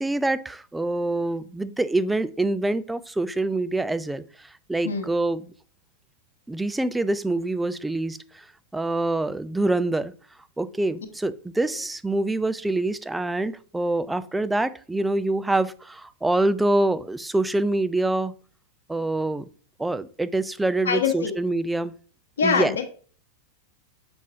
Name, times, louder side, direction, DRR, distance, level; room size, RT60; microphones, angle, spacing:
voice 1, 0.0-5.4 6.5-8.5 8.7-10.1 10.6-18.3 18.9-19.5 19.8-21.9 22.4-22.7, right 2 dB, 5° right, 14 dB, 0.4 m, -25 dB
voice 2, 20.8-21.3 22.4-22.8, left 6 dB, 65° left, 5 dB, 1.2 m, -23 dB
7.0 x 5.9 x 2.8 m, 0.42 s
figure-of-eight pair, 90°, 0 cm